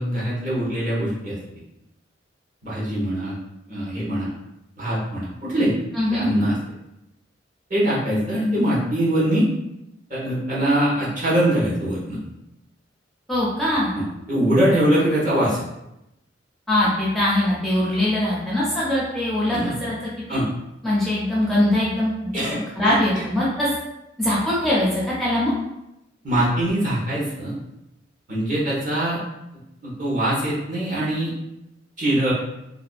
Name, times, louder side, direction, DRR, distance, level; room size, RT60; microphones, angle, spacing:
voice 1, 0.0-1.3 2.6-3.3 3.7-4.3 4.8-5.7 6.1-6.5 7.7-9.5 10.1-12.2 13.9-15.6 19.5-19.7 20.3-20.5 22.3-23.2 26.2-27.5 28.3-29.2 29.8-31.3 32.0-32.3, right 1 dB, 45° right, -8 dB, 1.0 m, -22 dB
voice 2, 5.9-6.3 13.3-13.9 16.7-19.9 20.3-20.4 20.8-22.3 22.8-23.7 24.2-25.5, left 1 dB, ahead, -7 dB, 0.5 m, -22 dB
2.6 x 2.2 x 2.4 m, 0.89 s
head